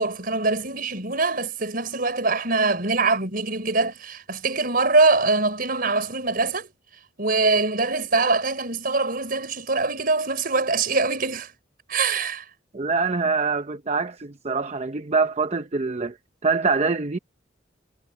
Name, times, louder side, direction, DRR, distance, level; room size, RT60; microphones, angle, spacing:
voice 1, 0.0-6.7 7.2-11.5 11.9-12.4, right 3 dB, 50° right, 4.9 m, -23 dB
voice 2, 12.7-16.2 16.4-17.2, right 4 dB, 35° right, 0.8 m, -24 dB
head